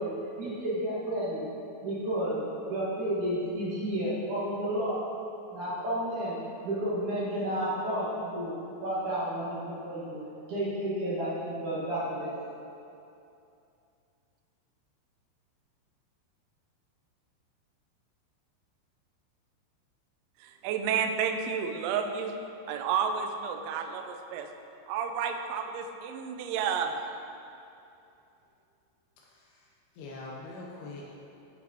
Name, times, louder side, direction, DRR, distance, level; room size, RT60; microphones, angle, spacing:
voice 1, 0.0-1.5 1.8-2.4 2.7-5.0 5.5-6.4 6.6-8.6 8.8-10.2 10.5-12.3, right 1 dB, 55° right, -10 dB, 2.4 m, -31 dB
voice 2, 20.4-22.3 22.7-24.5 24.9-26.9, right 7 dB, 85° right, 5 dB, 2.8 m, -31 dB
voice 3, 29.2-29.7 30.0-31.1, left 2 dB, 80° left, -4 dB, 2.4 m, -43 dB
10.5 x 6.1 x 2.9 m, 2.7 s
omnidirectional pair, 5.6 m